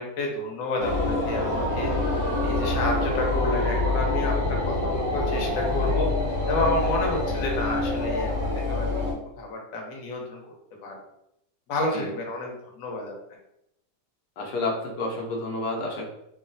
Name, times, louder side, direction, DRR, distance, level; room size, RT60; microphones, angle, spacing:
voice 1, 0.0-6.1 6.5-8.9 9.4-10.4 10.8-11.0 11.7-13.1, left 2 dB, 65° left, 0 dB, 1.0 m, -30 dB
sound 1, 0.8-9.1, left 2 dB, 40° right, 0.5 m, -26 dB
voice 2, 14.4-16.1, left 2 dB, 85° left, -1 dB, 1.2 m, -30 dB
3.0 x 2.3 x 2.6 m, 0.82 s
omnidirectional pair, 1.8 m